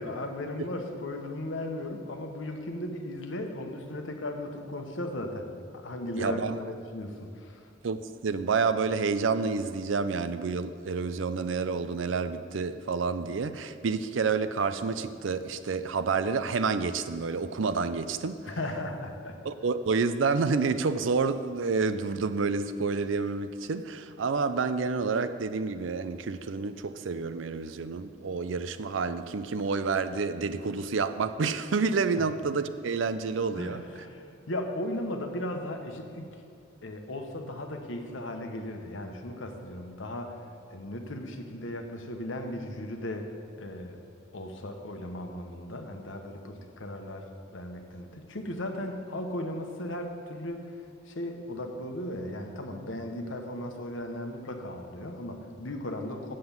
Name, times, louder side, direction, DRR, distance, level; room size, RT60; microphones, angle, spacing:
voice 1, 0.0-7.6 18.5-19.4 32.1-32.2 33.5-36.3 36.8-40.4 40.7-43.3 43.6-44.0 44.3-50.7 51.1-56.3, left 1 dB, 85° left, 4 dB, 1.1 m, -36 dB
voice 2, 6.2-6.6 7.8-18.4 19.4-33.8, right 4 dB, 75° right, 12 dB, 0.5 m, -29 dB
7.8 x 7.6 x 7.0 m, 2.4 s
head